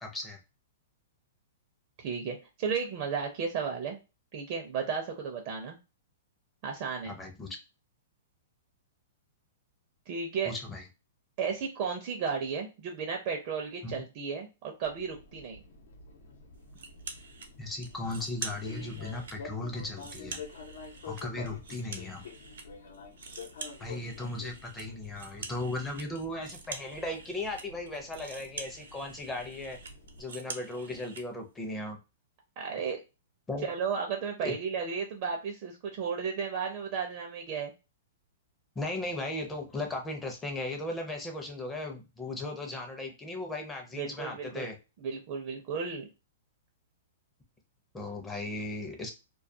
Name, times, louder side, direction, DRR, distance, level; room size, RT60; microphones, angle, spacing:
voice 1, 0.0-0.4 7.1-7.6 10.5-10.8 13.8-14.0 17.6-20.4 21.1-22.2 23.8-29.8 30.2-32.0 33.5-33.7 34.4-34.5 38.8-44.7 47.9-49.1, left 2 dB, 10° left, 2 dB, 0.5 m, -37 dB
voice 2, 2.0-4.0 4.3-5.8 6.6-7.2 10.1-10.5 11.4-15.6 32.6-33.0 33.6-37.7 43.9-44.7 45.0-46.1, right 6 dB, 40° right, 3 dB, 0.5 m, -34 dB
Fixed-wing aircraft airplane, 14.8-30.2, left 4 dB, 75° left, 0.8 m, -48 dB
sound 1, 16.8-17.5 17.8-19.4 19.8-22.7 22.9-31.3, right 4 dB, 80° right, 0.6 m, -45 dB
2.3 x 2.2 x 2.6 m, 0.28 s
hypercardioid pair, 155°, 0 cm